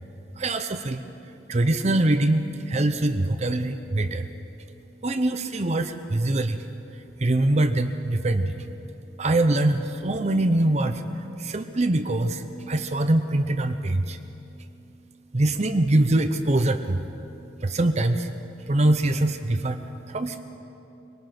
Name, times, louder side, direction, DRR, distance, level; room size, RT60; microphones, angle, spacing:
voice 1, 0.4-1.0 1.5-4.3 5.0-8.7 9.2-14.2 14.6-14.7 15.3-17.2 17.6-18.3 18.6-20.4, right 1 dB, 35° right, 8 dB, 0.7 m, -24 dB
23.0 x 19.0 x 6.0 m, 2.8 s
head